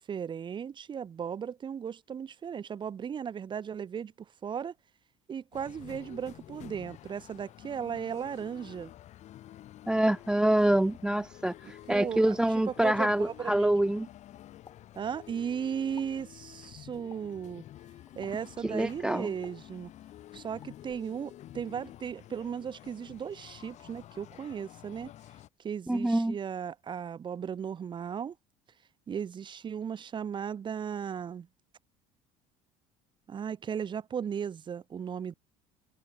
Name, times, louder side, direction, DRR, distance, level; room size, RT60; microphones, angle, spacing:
voice 1, 0.0-4.1 4.4-4.7 5.3-8.9 11.9-12.4 12.6-13.9 14.9-17.6 18.2-19.9 20.3-25.1 25.6-28.3 29.1-31.5 33.3-35.4, right 7 dB, 30° right, 3.0 m, -36 dB
sound 1, 5.5-25.5, left 13 dB, 50° left, 3.3 m, -50 dB
voice 2, 9.9-14.1 18.6-19.3 25.9-26.4, right 1 dB, 5° right, 0.4 m, -26 dB
Explosion, 14.7-15.5 15.8-16.3 17.1-17.5 18.2-18.6 19.4-20.1 20.6-20.9, left 6 dB, 30° left, 5.9 m, -55 dB
cardioid pair, 140°, 15 cm